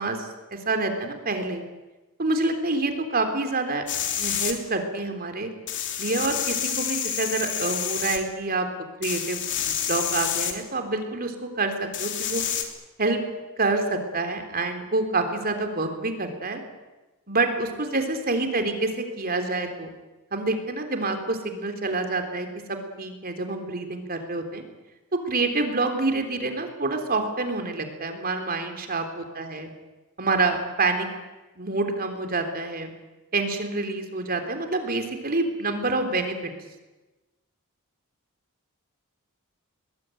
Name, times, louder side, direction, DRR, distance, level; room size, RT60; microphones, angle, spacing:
voice 1, 0.0-1.6 2.2-3.8 4.2-5.5 6.0-8.7 9.0-12.4 13.0-13.2 13.6-16.6 17.3-19.9 20.3-24.6 25.3-29.7 30.2-31.1 31.6-32.9 33.3-36.5, right 3 dB, 40° right, 6 dB, 3.6 m, -27 dB
sound 1, 3.9-4.5 5.7-8.2 9.0-10.5 11.9-12.6, left 9 dB, 55° left, 3.1 m, -28 dB
23.0 x 21.0 x 9.3 m, 1.1 s
head